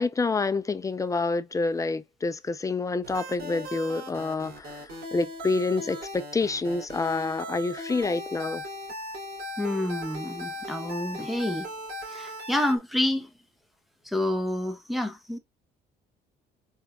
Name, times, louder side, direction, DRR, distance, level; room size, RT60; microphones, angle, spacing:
voice 1, 0.0-8.6, left 3 dB, 20° left, 0.5 m, -28 dB
sound 1, 3.0-12.8, left 1 dB, 70° right, 3.0 m, -38 dB
voice 2, 9.6-11.7 12.1-13.3 14.0-15.4, left 1 dB, ahead, 0.9 m, -28 dB
4.6 x 3.9 x 2.3 m
cardioid pair, 110°, 17 cm